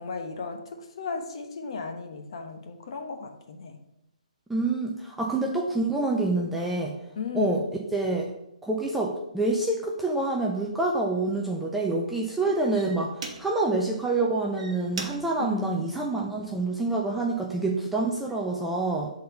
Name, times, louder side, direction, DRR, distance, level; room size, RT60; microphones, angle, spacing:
voice 1, 0.0-3.8 7.2-7.6 15.4-15.7, left 5 dB, 40° left, 5 dB, 0.9 m, -35 dB
voice 2, 4.5-6.9 7.3-7.6 7.9-8.3 8.6-19.1, right 2 dB, ahead, -2 dB, 0.3 m, -27 dB
sound 1, 10.6-10.7 11.3-11.6 12.3-12.4 12.7-13.8 14.4-16.7 17.3-17.6, right 4 dB, 45° right, 1.1 m, -41 dB
6.8 x 3.9 x 5.6 m, 0.84 s
hypercardioid pair, 175°, 4 cm